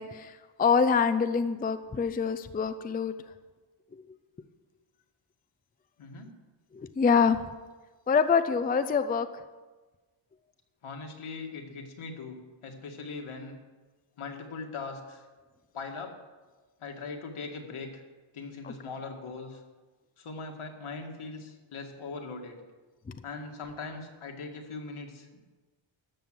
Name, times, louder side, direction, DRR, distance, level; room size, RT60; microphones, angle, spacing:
voice 1, 0.0-3.1 3.9-4.0 6.7-7.4 8.1-9.4 18.6-18.7, left 6 dB, 20° left, 10 dB, 0.4 m, -25 dB
voice 2, 6.0-6.3 10.8-12.4 12.6-13.6 14.2-15.2 15.7-16.1 16.8-18.0 18.3-19.6 20.2-22.6 23.2-25.4, left 4 dB, 75° left, 2 dB, 2.0 m, -40 dB
13.0 x 7.0 x 7.7 m, 1.3 s
wide cardioid pair, 175°, 49 cm